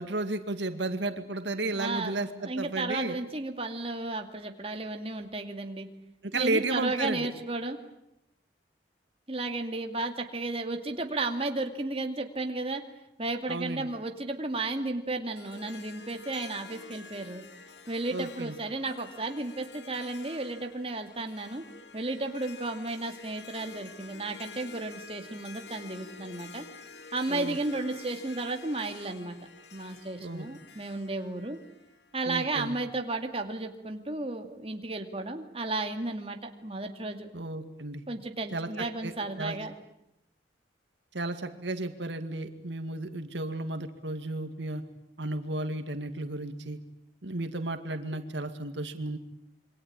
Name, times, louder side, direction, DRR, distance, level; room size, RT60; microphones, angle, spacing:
voice 1, 0.0-3.2 6.2-7.3 13.5-13.9 18.1-18.5 27.3-27.6 30.2-30.5 32.3-32.7 37.3-38.0 38.5-39.5 41.1-44.8 45.2-46.8 47.2-49.2, right 2 dB, 85° right, 8 dB, 2.2 m, -33 dB
voice 2, 1.7-2.1 2.4-5.9 6.3-7.8 9.3-12.8 13.2-17.4 17.9-21.6 21.9-26.6 27.1-29.3 29.7-31.6 32.1-37.3 38.1-39.7, right 2 dB, 30° right, 4 dB, 2.3 m, -33 dB
Harp, 15.3-32.6, left 5 dB, 75° left, 2.4 m, -49 dB
27.5 x 24.5 x 8.8 m, 0.81 s
head